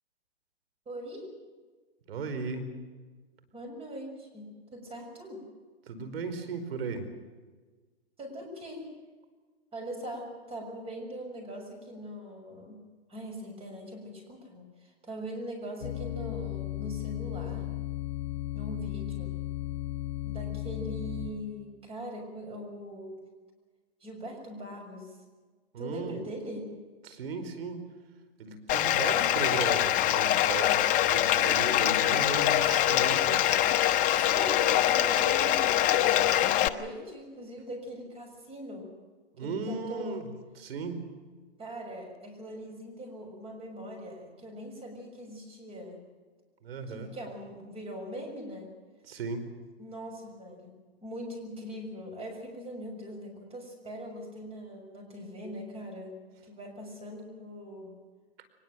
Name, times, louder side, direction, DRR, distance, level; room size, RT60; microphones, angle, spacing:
voice 1, 0.8-1.3 3.5-5.4 8.2-8.9 9.7-12.8 13.1-17.7 18.5-19.4 20.2-23.2 24.0-25.2 25.8-26.7 31.3-31.9 34.1-38.9 39.4-40.3 41.6-46.0 46.9-48.7 49.8-56.2 56.5-58.0, equal, 20° right, 2 dB, 6.5 m, -41 dB
voice 2, 2.1-2.7 5.9-7.1 25.7-26.2 27.0-27.9 28.4-33.4 39.3-41.1 46.6-47.1 49.0-49.5, right 4 dB, 65° right, 9 dB, 4.9 m, -36 dB
sound 1, 15.8-21.3, left 13 dB, 45° left, 7.8 m, -35 dB
Bathtub (filling or washing), 28.7-36.7, left 12 dB, 25° left, 0.9 m, -24 dB
23.5 x 21.0 x 7.6 m, 1.4 s
hypercardioid pair, 140°, 32 cm